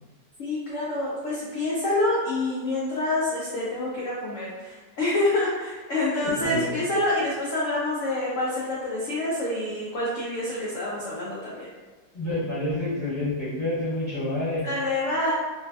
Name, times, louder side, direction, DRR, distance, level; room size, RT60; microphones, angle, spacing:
voice 1, 0.4-11.7 14.6-15.3, left 2 dB, 80° left, -6 dB, 0.7 m, -27 dB
voice 2, 6.2-6.8 12.1-14.6, left 1 dB, 30° left, -13 dB, 0.7 m, -28 dB
3.1 x 2.5 x 2.3 m, 1.4 s
omnidirectional pair, 2.0 m